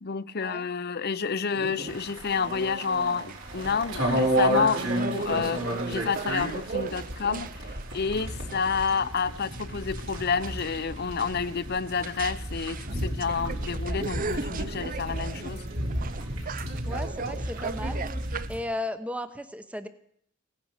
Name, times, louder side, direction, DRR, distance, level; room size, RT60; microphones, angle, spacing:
voice 1, 0.0-7.5 7.9-15.6, left 5 dB, 50° left, 0.7 m, -29 dB
sound 1, 1.5-18.5, right 4 dB, 40° right, 0.5 m, -38 dB
sound 2, 1.9-18.6, right 1 dB, 65° right, 4.4 m, -32 dB
voice 2, 16.9-18.1 18.5-19.9, left 1 dB, 5° right, 0.9 m, -35 dB
17.5 x 10.5 x 6.6 m
head